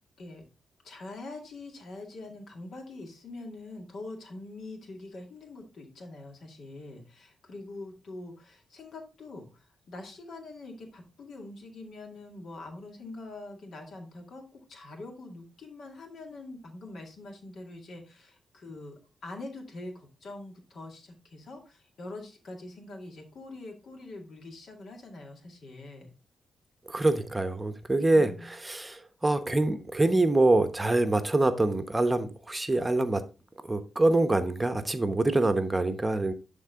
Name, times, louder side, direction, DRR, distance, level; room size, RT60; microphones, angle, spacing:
voice 1, 0.8-18.9 19.2-26.1 28.0-28.5, left 2 dB, 70° left, 2 dB, 2.1 m, -44 dB
voice 2, 26.9-33.2 33.6-36.3, right 2 dB, 20° right, 9 dB, 0.9 m, -25 dB
11.0 x 3.7 x 3.6 m, 0.32 s
cardioid pair, 60°, 0 cm